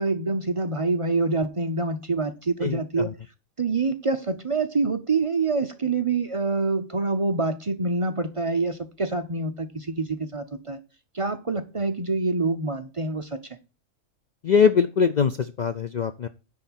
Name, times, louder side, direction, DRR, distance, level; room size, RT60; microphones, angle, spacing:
voice 1, 0.0-3.1 3.6-10.8 11.1-13.4, right 3 dB, 35° right, 0.6 m, -26 dB
voice 2, 14.4-16.3, left 6 dB, 90° left, 0.3 m, -21 dB
10.0 x 3.9 x 7.2 m
omnidirectional pair, 1.4 m